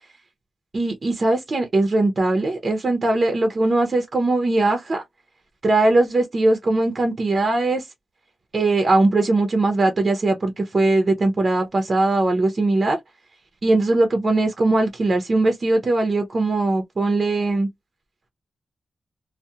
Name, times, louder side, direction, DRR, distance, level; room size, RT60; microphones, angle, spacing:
voice 1, 0.7-5.0 5.6-7.8 8.5-13.0 13.6-17.7, right 2 dB, 45° right, 0.5 m, -20 dB
2.7 x 2.0 x 2.2 m
wide cardioid pair, 100°, 0 cm